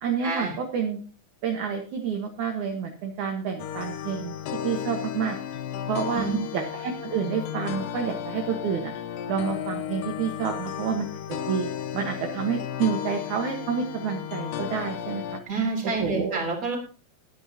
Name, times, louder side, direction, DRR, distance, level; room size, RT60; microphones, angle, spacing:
voice 1, 0.0-1.0 1.4-4.3 4.6-5.4 5.9-6.2 6.5-8.9 9.3-11.7 11.9-15.4 16.0-16.4, right 6 dB, 60° right, 3 dB, 2.4 m, -29 dB
sound 1, 3.6-15.4, left 10 dB, 75° left, 2.3 m, -34 dB
voice 2, 15.5-16.8, right 3 dB, 20° right, 0 dB, 3.6 m, -28 dB
21.5 x 9.3 x 2.9 m, 0.37 s
omnidirectional pair, 4.6 m